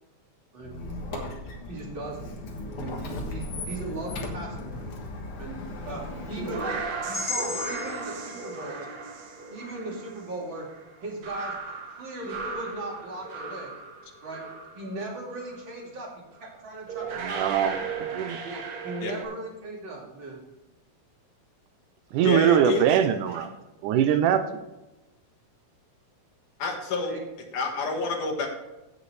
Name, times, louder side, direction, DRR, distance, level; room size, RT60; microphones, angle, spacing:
Squeak, 0.6-7.0, left 2 dB, 55° left, 2.0 m, -37 dB
voice 1, 1.7-2.3 2.8-4.9 5.4-8.9 9.5-10.7 11.0-13.7 14.2-14.5 14.7-16.1 16.4-17.8 18.4-20.4 26.9-27.2, right 2 dB, 40° right, -2 dB, 3.0 m, -38 dB
sound 1, 6.1-15.0 15.3-15.7 16.4-16.5 16.9-19.2, right 4 dB, 65° right, 2.4 m, -36 dB
sound 2, 7.1-11.2, left 3 dB, 25° left, 2.0 m, -38 dB
voice 2, 17.4-17.7 18.2-18.4 22.1-23.5 23.8-24.6, right 9 dB, 85° right, 8 dB, 2.2 m, -22 dB
voice 3, 22.2-23.0 26.6-27.1 27.5-28.5, left 4 dB, 80° left, 2 dB, 3.2 m, -28 dB
16.0 x 6.7 x 3.3 m, 1.0 s
omnidirectional pair, 3.5 m